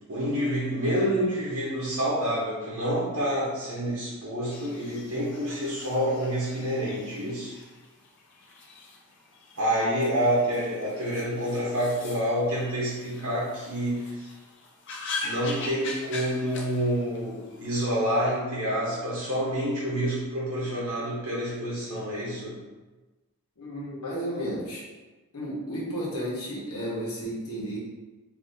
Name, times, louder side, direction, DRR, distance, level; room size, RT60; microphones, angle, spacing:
voice 1, 0.1-7.6 9.6-14.3 15.2-22.6, equal, 65° right, -7 dB, 0.8 m, -28 dB
sound 1, 4.5-17.8, left 3 dB, 55° left, 0.5 m, -42 dB
voice 2, 23.6-24.8 25.3-27.8, equal, 80° left, -6 dB, 1.1 m, -33 dB
3.6 x 2.7 x 2.6 m, 1.2 s
head